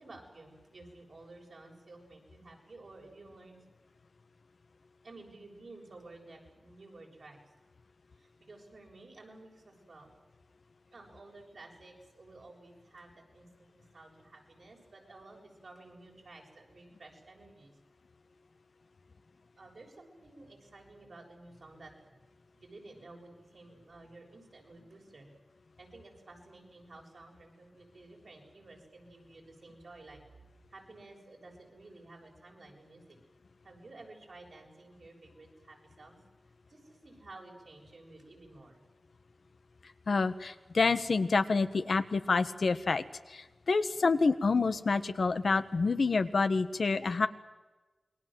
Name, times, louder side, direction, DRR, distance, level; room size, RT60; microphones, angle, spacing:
voice 1, 0.0-3.6 5.0-7.5 8.2-10.1 10.9-17.7 19.6-22.2 22.5-25.3 25.8-30.2 30.7-33.2 33.6-36.2 36.5-38.8, right 2 dB, 80° right, 1 dB, 7.1 m, -53 dB
voice 2, 40.1-47.3, left 4 dB, 90° left, 11 dB, 1.3 m, -28 dB
28.0 x 22.0 x 7.8 m, 1.2 s
wide cardioid pair, 65°, 0 cm